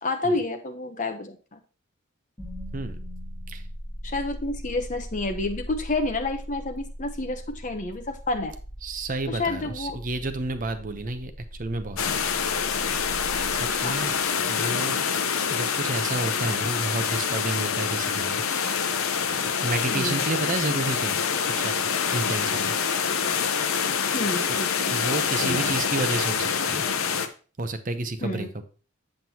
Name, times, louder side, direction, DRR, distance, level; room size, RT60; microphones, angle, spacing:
voice 1, 0.0-1.6 4.0-8.5 9.3-10.0 13.8-14.1 19.9-20.2 23.2-23.3 24.1-24.9 25.4-25.7 28.2-28.5, left 2 dB, 35° left, 4 dB, 1.0 m, -29 dB
sound 1, 2.4-14.5, equal, 15° left, 3.1 m, -39 dB
voice 2, 8.8-11.3 11.6-12.2 13.5-14.1 14.5-15.0 15.5-18.4 19.6-21.2 21.6-21.9 22.1-22.7 24.9-26.8 27.6-28.7, right 2 dB, 40° right, 9 dB, 0.7 m, -30 dB
sound 2, 12.0-27.3, left 6 dB, 80° left, 0.7 m, -26 dB
7.6 x 7.5 x 2.9 m, 0.36 s
head